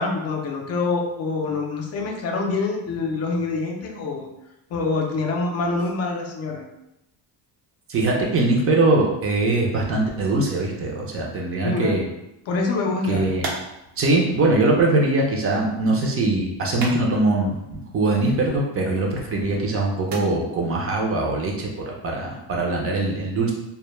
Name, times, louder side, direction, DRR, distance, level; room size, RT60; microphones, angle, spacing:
voice 1, 0.0-4.3 4.7-6.6 11.6-12.0 12.5-13.3, left 3 dB, 35° left, 1 dB, 0.4 m, -25 dB
voice 2, 7.9-12.0 13.1-13.5 14.0-23.5, right 2 dB, 30° right, -1 dB, 0.4 m, -22 dB
sound 1, 12.5-22.3, right 3 dB, 90° right, 0.8 m, -41 dB
2.2 x 2.0 x 3.0 m, 0.89 s
cardioid pair, 130°, 48 cm